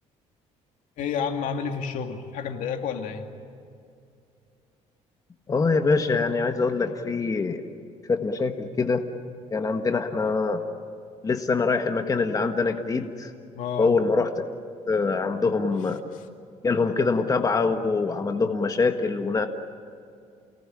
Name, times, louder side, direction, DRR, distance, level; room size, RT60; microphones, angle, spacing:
voice 1, 1.0-3.3 13.5-13.9, left 6 dB, 75° left, 5 dB, 2.5 m, -30 dB
voice 2, 5.5-7.7 8.1-9.0 9.5-10.6 11.2-13.3 13.8-14.4 14.9-16.0 16.6-19.5, left 4 dB, 25° left, 6 dB, 1.5 m, -24 dB
29.0 x 19.0 x 10.0 m, 2.4 s
cardioid pair, 115°, 13 cm